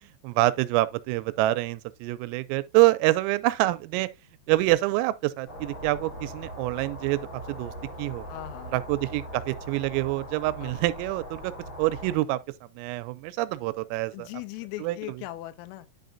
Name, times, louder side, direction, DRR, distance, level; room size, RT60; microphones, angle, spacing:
voice 1, 0.2-4.1 4.5-7.7 8.0-8.3 8.7-11.5 11.8-12.4 12.8-14.3 14.8-15.2, right 18 dB, 90° right, 3.3 m, -26 dB
sound 1, 5.5-12.2, equal, 50° left, 1.5 m, -40 dB
voice 2, 8.3-8.8 10.6-10.8 14.1-15.9, left 17 dB, 90° left, 3.3 m, -39 dB
10.0 x 5.4 x 2.6 m
omnidirectional pair, 5.8 m